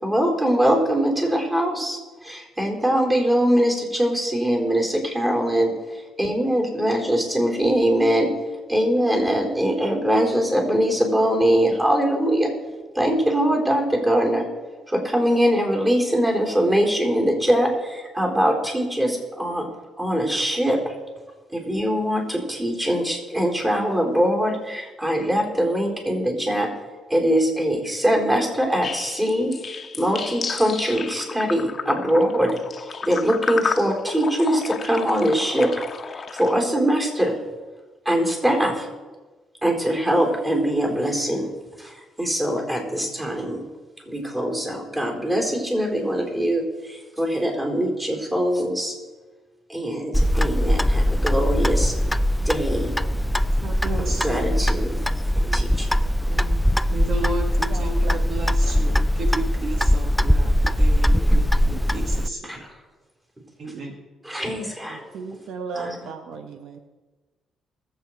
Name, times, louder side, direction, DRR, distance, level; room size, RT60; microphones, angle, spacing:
voice 1, 0.0-8.3 8.7-12.5 12.9-14.5 14.9-19.7 20.0-21.0 21.5-26.7 27.1-35.7 36.1-37.4 38.0-38.9 39.6-41.5 41.8-43.6 44.0-48.9 49.7-51.9 52.4-53.0 54.2-55.0 55.4-56.0 62.5-62.6 64.2-65.0 65.7-66.0, equal, 20° right, 0 dB, 4.3 m, -22 dB
sound 1, 28.8-36.5, left 5 dB, 45° left, 1.0 m, -32 dB
Clock, 50.1-62.3, equal, 5° left, 0.4 m, -21 dB
voice 2, 53.6-54.7 56.3-62.7 63.6-64.0, right 2 dB, 60° right, 3 dB, 1.6 m, -33 dB
voice 3, 57.7-58.5 64.9-66.8, right 5 dB, 75° right, 6 dB, 1.0 m, -36 dB
20.5 x 8.0 x 4.7 m, 1.3 s
cardioid pair, 90°, 0 cm